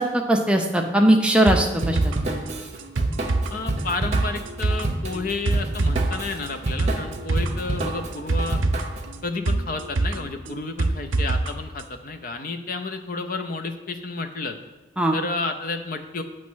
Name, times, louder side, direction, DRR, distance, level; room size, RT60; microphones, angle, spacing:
voice 1, 0.0-2.3 15.0-15.2, right 1 dB, 5° right, 2 dB, 0.5 m, -20 dB
sound 1, 1.5-11.5 11.8-11.9, right 2 dB, 85° right, 0.6 m, -26 dB
Drum kit / Drum, 1.8-9.1, right 2 dB, 35° right, 0.7 m, -29 dB
voice 2, 3.5-8.6 9.2-14.6 15.1-16.2, left 3 dB, 45° left, 7 dB, 0.5 m, -31 dB
8.4 x 3.1 x 6.1 m, 1.2 s
head